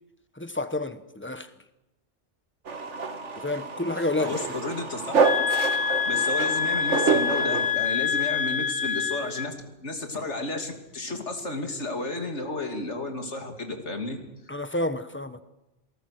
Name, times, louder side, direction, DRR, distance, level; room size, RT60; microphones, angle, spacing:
voice 1, 0.3-1.5 3.4-4.5 14.5-15.4, left 2 dB, 10° left, 1.1 m, -29 dB
sound 1, 2.7-7.7, right 4 dB, 85° right, 1.9 m, -28 dB
voice 2, 4.2-5.1 6.1-9.6 9.8-14.2, left 2 dB, 80° left, 3.1 m, -32 dB
sound 2, 5.2-9.5, left 7 dB, 40° left, 1.5 m, -26 dB
28.5 x 18.5 x 6.6 m
omnidirectional pair, 1.2 m